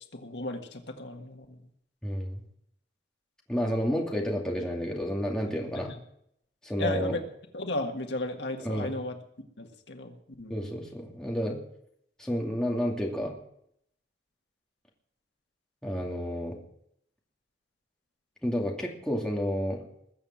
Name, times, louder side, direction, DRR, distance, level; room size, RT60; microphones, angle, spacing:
voice 1, 0.1-1.6 5.8-6.0 6.8-7.2 7.5-9.2 9.6-10.6, left 2 dB, 75° left, 5 dB, 1.7 m, -34 dB
voice 2, 2.0-2.4 3.5-5.9 6.6-7.2 8.6-9.0 10.5-11.6 12.2-13.4 15.8-16.6 18.4-19.8, equal, 5° left, -2 dB, 2.5 m, -30 dB
21.0 x 7.2 x 7.5 m, 0.72 s
head